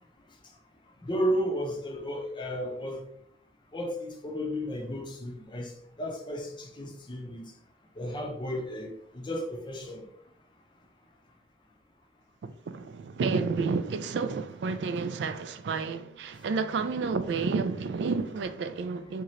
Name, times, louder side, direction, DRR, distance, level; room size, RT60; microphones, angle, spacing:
voice 1, 1.0-3.0 3.7-5.7 6.0-7.4 8.0-10.1, equal, 25° left, 0.5 m, -33 dB
voice 2, 12.4-19.2, right 4 dB, 75° right, 0.3 m, -30 dB
3.7 x 2.8 x 3.1 m
head